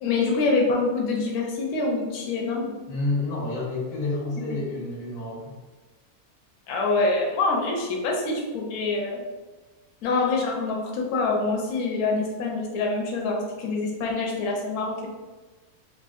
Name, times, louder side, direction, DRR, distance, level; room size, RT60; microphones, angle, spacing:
voice 1, 0.0-2.7 4.5-4.6 6.7-9.2 10.0-15.1, left 3 dB, 65° left, -1 dB, 0.9 m, -25 dB
voice 2, 2.9-5.5, left 2 dB, 85° left, -3 dB, 1.4 m, -29 dB
3.6 x 2.2 x 2.4 m, 1.2 s
omnidirectional pair, 1.6 m